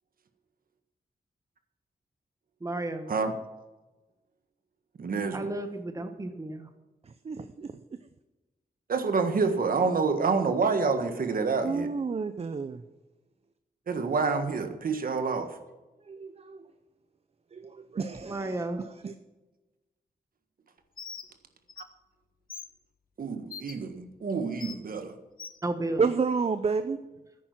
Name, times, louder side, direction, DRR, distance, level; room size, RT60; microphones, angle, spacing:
voice 1, 2.6-3.1 5.3-6.7 18.2-18.8 25.6-26.0, right 2 dB, 20° right, 7 dB, 1.3 m, -33 dB
voice 2, 5.0-5.5 8.9-11.9 13.9-15.6 21.8-21.9 23.2-25.1, right 4 dB, 65° right, 7 dB, 1.6 m, -28 dB
voice 3, 7.1-7.7 11.6-12.8 16.1-16.6 17.5-19.1 26.0-27.0, right 5 dB, 40° right, 10 dB, 0.6 m, -30 dB
Bird, 21.0-21.3 21.7-21.8 22.5-22.7 23.5-23.7 24.6-24.8 25.4-25.6, left 6 dB, 65° left, 1.1 m, -41 dB
14.0 x 10.0 x 5.9 m, 1.1 s
wide cardioid pair, 170°, 16 cm